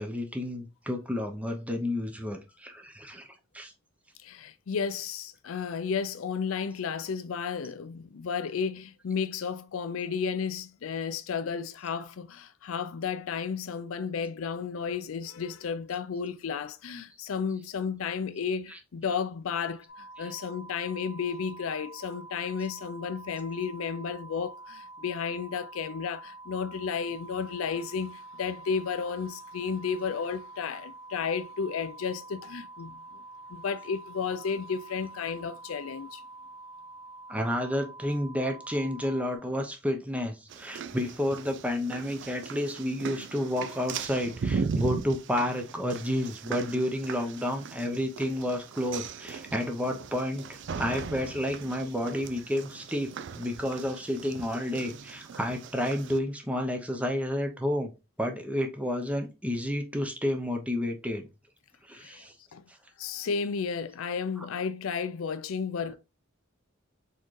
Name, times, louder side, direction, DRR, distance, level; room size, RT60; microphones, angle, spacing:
voice 1, 0.0-3.3 3.5-3.7 18.7-18.8 37.3-53.1 53.3-57.9 58.2-61.3 61.9-62.3, left 1 dB, 5° right, 0.7 m, -30 dB
voice 2, 4.2-33.2 33.5-36.2 62.0-62.2 62.5-62.7 63.0-66.0, left 6 dB, 80° left, 0.4 m, -33 dB
sound 1, 19.9-39.4, right 2 dB, 80° right, 2.3 m, -47 dB
sound 2, 40.5-56.2, right 5 dB, 60° right, 0.4 m, -38 dB
4.3 x 3.7 x 3.1 m
head